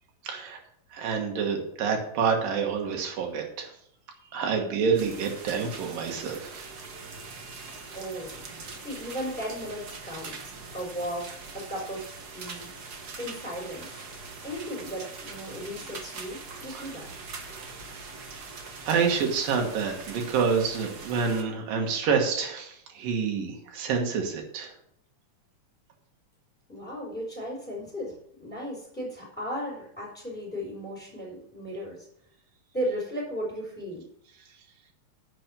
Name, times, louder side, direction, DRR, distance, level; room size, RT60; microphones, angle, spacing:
voice 1, 0.2-0.6 0.9-3.7 4.3-6.7 7.1-7.8 16.7-16.9 17.5-17.6 18.8-24.7, right 6 dB, 90° right, 1 dB, 3.2 m, -28 dB
sound 1, 4.9-21.4, right 4 dB, 75° right, 0.9 m, -42 dB
voice 2, 7.9-8.3 8.8-10.4 10.7-11.3 11.5-12.7 13.2-13.9 14.4-17.1 26.7-28.1 28.4-32.1 32.7-34.1, equal, 5° left, -3 dB, 5.2 m, -35 dB
10.5 x 6.1 x 6.7 m, 0.73 s
omnidirectional pair, 3.8 m